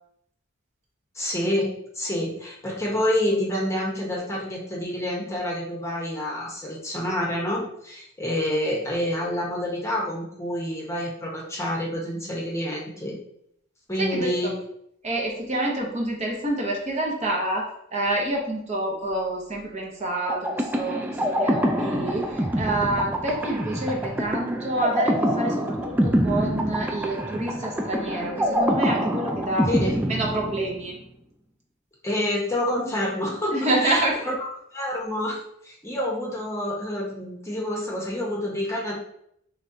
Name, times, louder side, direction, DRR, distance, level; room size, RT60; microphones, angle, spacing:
voice 1, 1.1-13.2 13.9-14.5 29.7-29.9 32.0-33.5 33.8-34.0 34.7-38.9, left 1 dB, 15° left, -3 dB, 0.9 m, -28 dB
voice 2, 14.0-14.5 15.0-31.0 33.5-34.4, right 1 dB, 35° right, -2 dB, 0.8 m, -28 dB
sound 1, 20.3-31.0, equal, 10° right, 0.3 m, -25 dB
5.1 x 3.3 x 2.6 m, 0.72 s
head